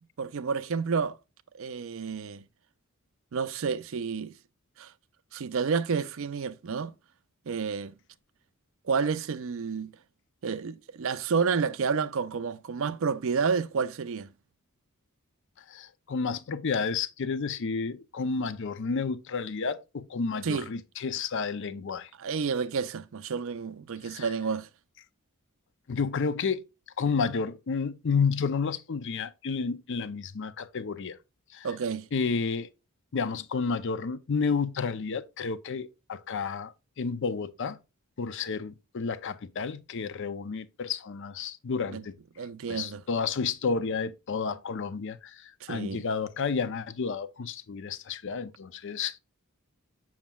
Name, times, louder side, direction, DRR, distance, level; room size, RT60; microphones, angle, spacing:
voice 1, 0.2-1.2 1.5-2.4 3.3-4.3 4.8-4.9 5.3-6.9 7.5-7.9 8.9-9.9 10.4-14.3 20.4-20.7 22.2-24.7 31.6-32.1 41.9-42.0 42.4-43.0 45.6-46.0, right 5 dB, 65° right, 0.5 m, -30 dB
voice 2, 15.7-22.1 24.0-24.3 25.9-26.6 27.0-31.2 31.5-31.7 32.1-32.7 33.1-37.8 38.2-42.1 42.7-49.2, left 5 dB, 60° left, 0.5 m, -31 dB
7.2 x 6.0 x 2.3 m
head